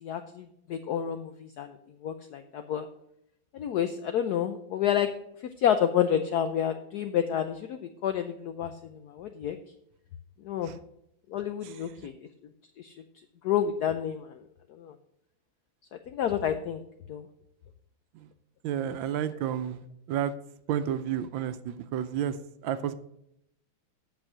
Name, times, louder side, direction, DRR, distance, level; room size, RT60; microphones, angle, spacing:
voice 1, 0.0-1.8 2.0-2.9 3.5-5.1 5.6-9.6 10.4-10.7 11.3-12.1 12.8-12.9 13.4-14.4 14.7-14.9 16.1-16.8 17.1-17.3, left 9 dB, 85° left, 9 dB, 0.8 m, -29 dB
voice 2, 18.6-19.8 20.1-20.3 20.7-22.9, right 9 dB, 75° right, 12 dB, 1.3 m, -31 dB
8.2 x 6.3 x 6.1 m, 0.77 s
omnidirectional pair, 2.3 m